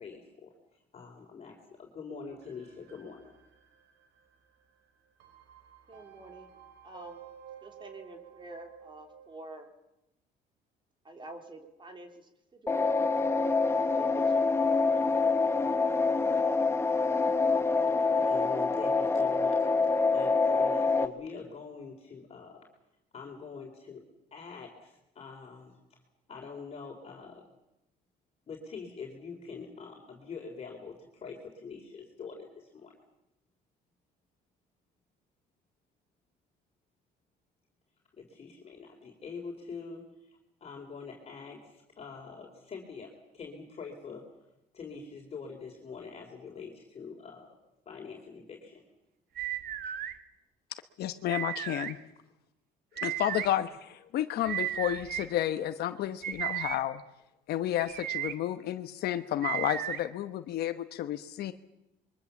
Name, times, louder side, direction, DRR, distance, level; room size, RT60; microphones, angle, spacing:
voice 1, 0.0-3.3 18.2-22.7 23.1-24.0 24.3-25.8 26.3-27.4 28.5-33.0 38.2-44.2 44.7-47.5 47.9-48.8 49.8-49.9, left 5 dB, 40° left, 0 dB, 3.9 m, -45 dB
sound 1, 2.3-9.4, right 9 dB, 85° right, 2.9 m, -54 dB
voice 2, 5.9-6.5 6.8-7.2 7.6-9.7 11.0-13.0 13.4-15.1, right 2 dB, 30° right, 4 dB, 3.4 m, -48 dB
sound 2, 12.7-21.1, left 4 dB, 15° left, 1.1 m, -26 dB
sound 3, 49.4-50.1 51.3-51.9 53.0-53.5 54.4-55.3 56.2-56.8 57.8-58.3 59.4-60.0, right 11 dB, 65° right, 1.5 m, -34 dB
voice 3, 51.0-52.0 53.0-57.0 57.5-61.5, left 12 dB, 70° left, 10 dB, 1.1 m, -31 dB
26.0 x 23.0 x 7.2 m, 0.89 s
cardioid pair, 110°, 17 cm